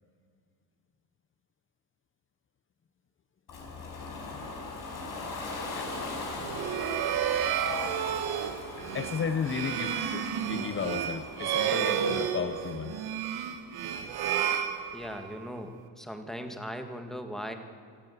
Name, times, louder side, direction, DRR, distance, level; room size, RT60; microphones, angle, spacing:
Ocean, 3.5-12.3, left 3 dB, 55° left, 5.3 m, -40 dB
sound 1, 6.4-15.4, right 8 dB, 70° right, 1.7 m, -31 dB
voice 1, 8.9-12.9, left 6 dB, 30° left, 9 dB, 0.8 m, -34 dB
voice 2, 14.9-17.5, equal, ahead, 6 dB, 1.8 m, -39 dB
25.5 x 14.0 x 8.4 m, 2.2 s
cardioid pair, 135°, 39 cm